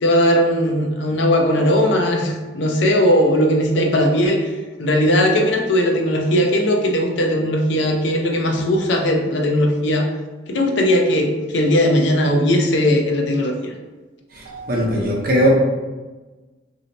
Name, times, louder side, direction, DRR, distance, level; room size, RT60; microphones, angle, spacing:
voice 1, 0.0-4.5 4.8-10.1 10.5-13.7, equal, 75° left, 2 dB, 0.5 m, -18 dB
voice 2, 14.3-15.5, equal, 50° right, -1 dB, 0.7 m, -19 dB
2.7 x 2.0 x 3.9 m, 1.2 s
head